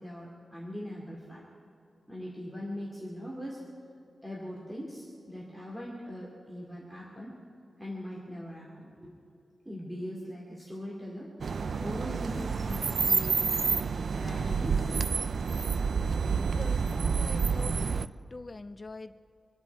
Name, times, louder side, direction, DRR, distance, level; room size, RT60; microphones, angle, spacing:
voice 1, 0.0-1.4 2.1-3.6 4.2-7.4 7.8-9.1 9.6-11.3 11.8-13.6 14.2-14.9 16.6-16.7, equal, 10° right, -5 dB, 2.5 m, -41 dB
sound 1, 11.4-18.1, right 5 dB, 55° right, 0.4 m, -29 dB
voice 2, 16.4-19.2, left 3 dB, 25° left, 11 dB, 0.4 m, -45 dB
26.5 x 10.5 x 4.6 m, 2.6 s
wide cardioid pair, 155°, 0 cm